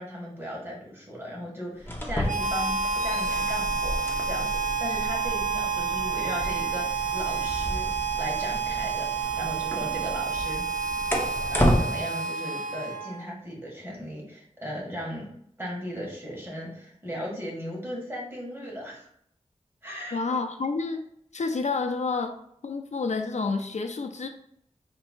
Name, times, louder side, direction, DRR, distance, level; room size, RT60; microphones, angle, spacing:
voice 1, 0.0-2.7 3.0-10.7 11.5-15.3 15.6-19.1 19.8-20.2, equal, 20° right, -4 dB, 1.6 m, -37 dB
sound 1, 1.8-11.9, equal, 15° left, 0.8 m, -32 dB
Harmonica, 2.2-13.3, right 5 dB, 85° right, 0.7 m, -29 dB
voice 2, 20.1-21.0 21.3-22.4 22.6-24.3, left 4 dB, 65° left, 6 dB, 0.4 m, -29 dB
4.4 x 3.9 x 2.3 m, 0.69 s
wide cardioid pair, 75°, 13 cm